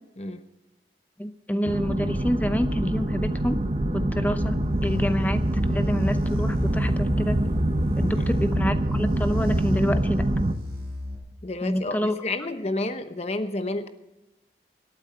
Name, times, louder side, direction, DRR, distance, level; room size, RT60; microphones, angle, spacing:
voice 1, 1.2-3.6 3.9-4.6 4.8-7.4 8.0-10.3 11.6-12.1, equal, 10° left, 0.7 m, -28 dB
sound 1, 1.6-10.5, right 1 dB, 35° right, 0.8 m, -25 dB
sound 2, 4.3-11.2, left 2 dB, 55° right, 5.8 m, -34 dB
voice 2, 11.4-13.9, left 2 dB, 35° left, 0.9 m, -30 dB
25.5 x 8.9 x 4.4 m
head